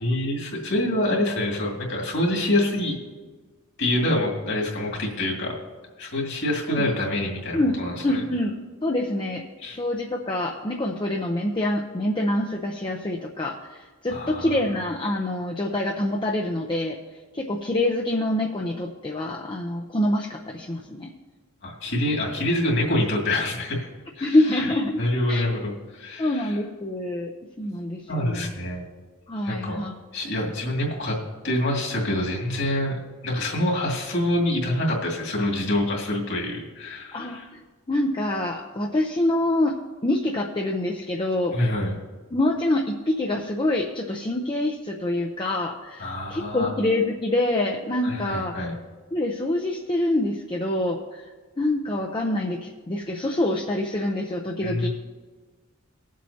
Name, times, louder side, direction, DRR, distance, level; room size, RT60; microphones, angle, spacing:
voice 1, 0.0-3.0 3.8-5.5 6.0-8.2 9.6-9.8 14.1-14.6 21.6-23.9 24.2-24.7 25.0-26.6 28.1-28.8 29.4-29.8 30.1-31.2 31.4-37.5 41.5-42.0 46.0-46.7 48.0-48.7 54.6-54.9, left 1 dB, 60° left, -1 dB, 2.3 m, -26 dB
voice 2, 8.0-8.5 8.8-9.4 9.8-17.0 17.3-21.1 24.2-25.0 25.3-25.4 26.2-27.3 27.6-28.5 29.3-29.9 37.1-37.6 37.9-39.8 40.0-41.6 42.3-48.5 49.1-51.3 51.6-54.9, left 1 dB, 25° left, 0 dB, 0.6 m, -26 dB
20.0 x 7.5 x 2.8 m, 1.4 s
head